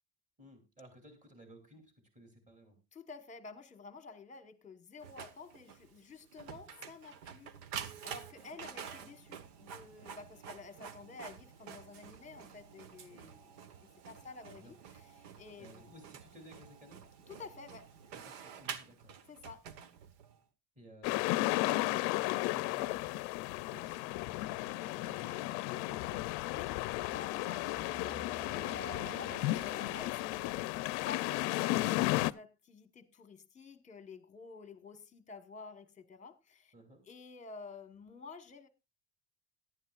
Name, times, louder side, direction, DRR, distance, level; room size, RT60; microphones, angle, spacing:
voice 1, 0.4-2.8 14.5-14.7 15.6-17.0 18.1-19.1 20.8-23.1 23.7-26.2 36.7-37.0, equal, 15° right, 3.0 m, -57 dB
voice 2, 2.9-7.5 8.0-15.1 15.4-15.9 17.3-17.9 19.3-19.6 26.5-30.6 31.0-36.7 37.1-38.7, left 4 dB, 15° left, 1.2 m, -51 dB
Printer, 5.0-20.4, right 7 dB, 90° right, 1.4 m, -48 dB
sound 1, 21.0-32.3, left 19 dB, 65° left, 0.6 m, -34 dB
sound 2, 25.2-30.6, right 2 dB, 40° right, 6.6 m, -53 dB
17.5 x 11.5 x 2.4 m
cardioid pair, 150°, 44 cm